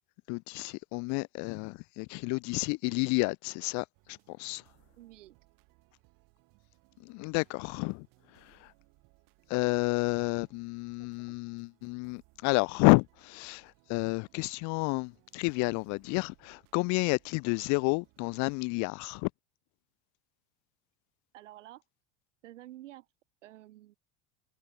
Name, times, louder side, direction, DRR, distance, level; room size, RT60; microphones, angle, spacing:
voice 1, 0.3-3.8 4.4-4.6 7.1-8.0 9.5-13.0 13.3-13.6 13.9-19.3, left 30 dB, 55° left, 0.5 m, -30 dB
sound 1, 3.9-18.6, right 25 dB, 65° right, 6.9 m, -66 dB
voice 2, 5.0-5.4 11.0-11.4 21.3-21.8 22.4-23.1 23.4-24.0, right 15 dB, 85° right, 4.6 m, -50 dB
supercardioid pair, 95°, 36 cm